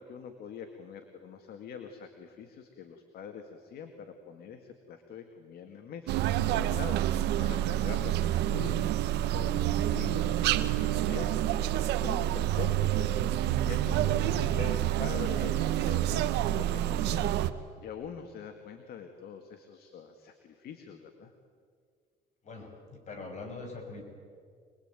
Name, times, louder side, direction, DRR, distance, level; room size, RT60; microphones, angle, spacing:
voice 1, 0.0-21.3, left 7 dB, 65° left, 6 dB, 2.1 m, -44 dB
sound 1, 6.1-17.5, right 12 dB, 80° right, 1.2 m, -28 dB
voice 2, 22.4-24.0, left 3 dB, 45° left, 3 dB, 6.3 m, -42 dB
26.5 x 21.0 x 9.1 m, 2.1 s
cardioid pair, 110°, 17 cm